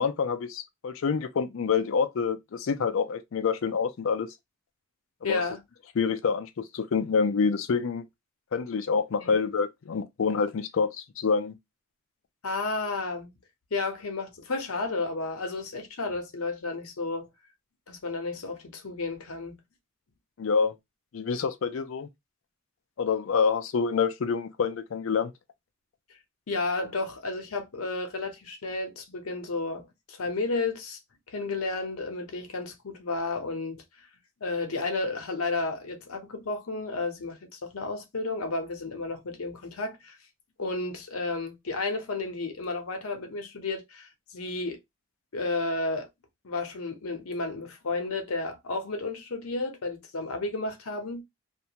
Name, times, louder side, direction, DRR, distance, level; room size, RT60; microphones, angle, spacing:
voice 1, 0.0-4.3 5.2-5.4 6.0-8.1 8.5-11.6 20.4-20.7 21.1-22.1 23.0-25.3, left 5 dB, 70° left, 0.4 m, -27 dB
voice 2, 5.2-5.6 9.2-9.3 12.4-13.3 13.7-17.3 17.9-19.6 26.5-31.0 31.3-33.8 34.4-40.2 40.6-44.8 45.3-46.1 46.4-51.2, left 3 dB, 90° left, 0.8 m, -32 dB
2.5 x 2.2 x 2.8 m
head